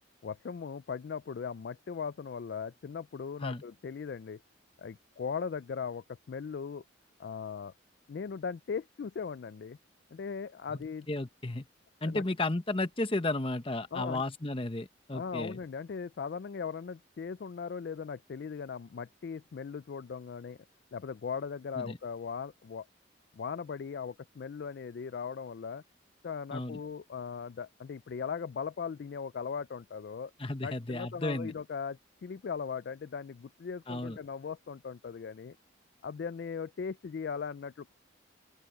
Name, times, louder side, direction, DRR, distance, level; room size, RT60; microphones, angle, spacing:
voice 1, 0.2-4.4 4.8-6.8 7.2-7.7 8.1-9.8 10.1-11.1 12.0-12.2 13.9-14.2 15.1-20.6 20.9-22.9 23.4-25.8 26.2-30.3 30.6-35.6 36.0-37.9, left 6 dB, 55° left, 0.3 m, -38 dB
voice 2, 11.1-11.7 12.0-15.6 21.8-22.0 26.5-26.8 30.4-31.5 33.9-34.2, left 2 dB, 25° left, 1.0 m, -33 dB
open air
head